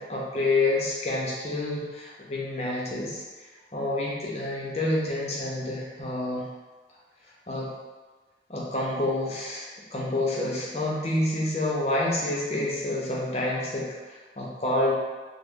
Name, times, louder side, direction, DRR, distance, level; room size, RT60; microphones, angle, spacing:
voice 1, 0.0-6.4 7.5-7.7 8.5-14.9, left 2 dB, 35° left, -4 dB, 0.6 m, -28 dB
3.0 x 2.1 x 3.5 m, 1.3 s
head